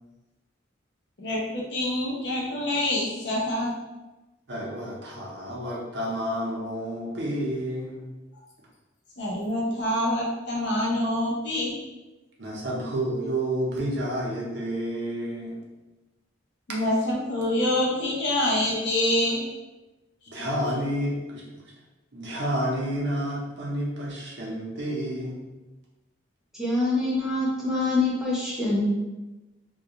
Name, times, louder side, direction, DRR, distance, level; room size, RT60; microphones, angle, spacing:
voice 1, 1.2-3.7 9.2-11.7 16.7-19.4, left 1 dB, 55° left, -3 dB, 0.6 m, -26 dB
voice 2, 4.5-8.1 12.4-15.6 20.3-21.4 22.1-25.4, right 1 dB, 60° right, -4 dB, 0.6 m, -30 dB
voice 3, 26.5-28.9, left 2 dB, ahead, -6 dB, 0.5 m, -25 dB
2.3 x 2.2 x 2.8 m, 1.1 s
head